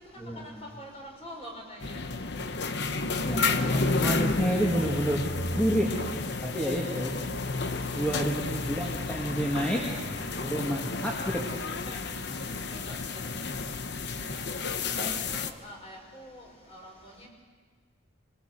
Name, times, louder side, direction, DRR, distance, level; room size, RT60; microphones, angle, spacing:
voice 1, 0.2-0.6 3.2-5.2 5.5-6.0 6.4-7.1 7.9-9.8 10.4-11.5 15.0-15.2, equal, 5° left, -4 dB, 2.4 m, -29 dB
voice 2, 0.8-2.0 6.6-6.7 10.1-10.5 11.7-12.0 12.9-13.0 14.2-14.4 15.0-16.4 16.7-16.9 17.2-17.3, equal, 30° left, 0 dB, 5.2 m, -45 dB
sound 1, 1.8-15.5, left 3 dB, 55° left, 1.0 m, -31 dB
25.0 x 21.0 x 8.0 m, 1.5 s
head